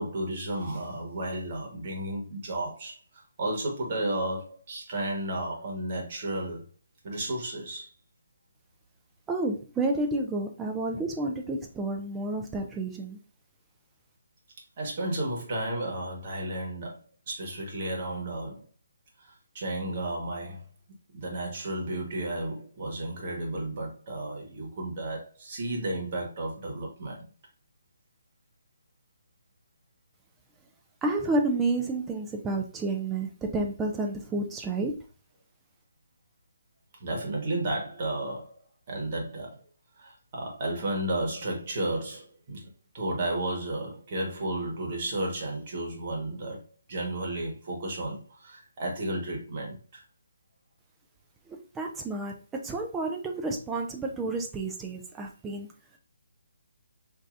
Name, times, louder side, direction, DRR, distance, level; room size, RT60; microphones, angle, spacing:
voice 1, 0.0-6.6 7.0-7.9 14.8-18.6 19.2-20.6 21.1-27.2 37.0-38.5 38.9-39.6 40.0-42.7 42.9-46.6 46.9-50.0, right 1 dB, 40° right, 1.3 m, -33 dB
voice 2, 9.3-13.2 31.0-34.9 51.5-55.7, right 2 dB, 10° right, 0.4 m, -30 dB
4.4 x 2.7 x 2.5 m
hypercardioid pair, 160°, 0 cm